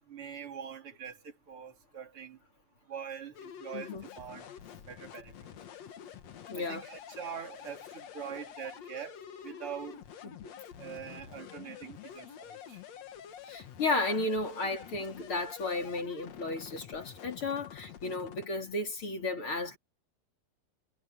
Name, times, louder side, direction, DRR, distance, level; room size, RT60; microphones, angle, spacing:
voice 1, 0.1-1.2 1.5-2.4 2.9-4.5 4.9-5.3 6.5-9.2 9.4-10.0 10.8-12.8, right 7 dB, 35° right, 4.0 m, -43 dB
sound 1, 3.3-18.5, left 9 dB, 55° left, 2.0 m, -48 dB
voice 2, 3.7-4.1 6.5-6.8 10.2-10.5 13.5-19.8, left 2 dB, 35° left, 4.1 m, -34 dB
omnidirectional pair, 4.7 m